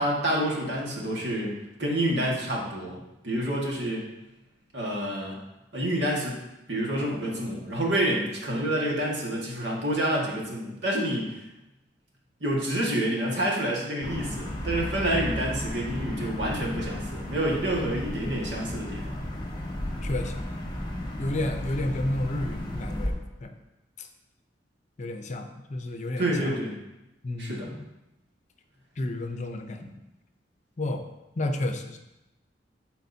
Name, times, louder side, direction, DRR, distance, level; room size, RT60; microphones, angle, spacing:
voice 1, 0.0-1.5 1.8-3.0 3.2-4.1 4.7-5.4 5.7-6.4 6.7-11.5 12.4-19.0 26.2-26.8 27.4-27.7, right 1 dB, 75° right, -3 dB, 1.8 m, -28 dB
sound 1, 14.0-23.1, left 1 dB, 25° left, 1.4 m, -34 dB
voice 2, 20.0-20.4 21.2-23.2 23.4-23.5 24.0-24.1 25.0-26.6 27.2-27.8 29.0-29.9 30.8-31.1 31.4-32.0, left 1 dB, 45° left, 5 dB, 0.7 m, -31 dB
12.0 x 4.4 x 2.8 m, 0.95 s
head